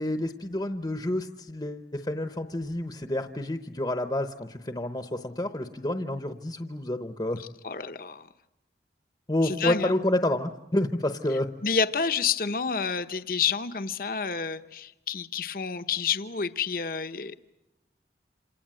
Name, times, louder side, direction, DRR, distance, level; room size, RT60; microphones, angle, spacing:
voice 1, 0.0-7.4 9.3-11.5, left 1 dB, 25° left, 7 dB, 0.9 m, -29 dB
voice 2, 7.4-8.3 9.4-9.9 11.6-17.4, left 6 dB, 50° left, 9 dB, 0.9 m, -29 dB
28.0 x 27.0 x 7.7 m, 0.95 s
head